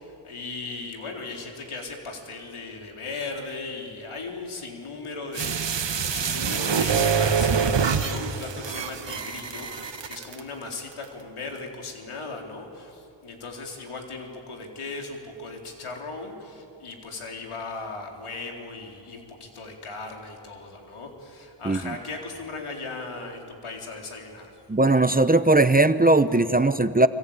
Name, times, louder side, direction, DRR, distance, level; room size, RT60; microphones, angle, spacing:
voice 1, 0.2-24.6, left 3 dB, 80° left, 1 dB, 4.1 m, -37 dB
sound 1, 5.3-10.4 10.7-10.8, right 6 dB, 60° right, 1.5 m, -25 dB
voice 2, 21.6-22.0 24.7-27.1, right 2 dB, 20° right, 12 dB, 0.9 m, -19 dB
25.5 x 24.5 x 8.9 m, 2.7 s
cardioid pair, 55°, 50 cm